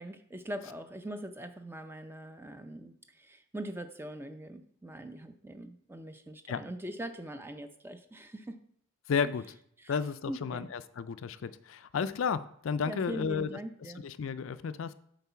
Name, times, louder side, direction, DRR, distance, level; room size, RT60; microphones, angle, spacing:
voice 1, 0.0-8.6 9.2-9.3 9.8-9.9 10.3-10.7 12.9-14.0, right 1 dB, 10° right, 8 dB, 0.5 m, -42 dB
voice 2, 9.1-9.4 9.9-13.6 14.0-14.9, left 6 dB, 65° left, 14 dB, 0.4 m, -32 dB
8.2 x 4.0 x 5.7 m, 0.67 s
head